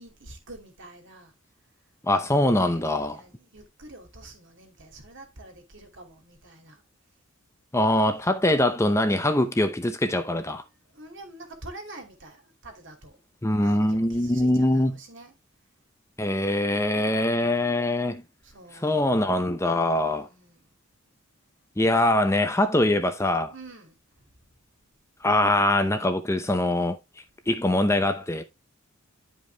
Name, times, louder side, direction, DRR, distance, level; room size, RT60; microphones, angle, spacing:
voice 1, 0.0-1.3 2.2-6.8 8.6-8.8 10.7-13.2 13.6-15.3 16.8-19.1 19.8-20.7 23.5-24.3, right 2 dB, 60° right, 2.6 m, -47 dB
voice 2, 2.0-3.2 7.7-10.6 13.4-14.9 16.2-18.2 18.8-20.3 21.8-23.5 25.2-27.0 27.5-28.4, left 1 dB, 15° left, 0.7 m, -23 dB
11.0 x 5.3 x 3.4 m
head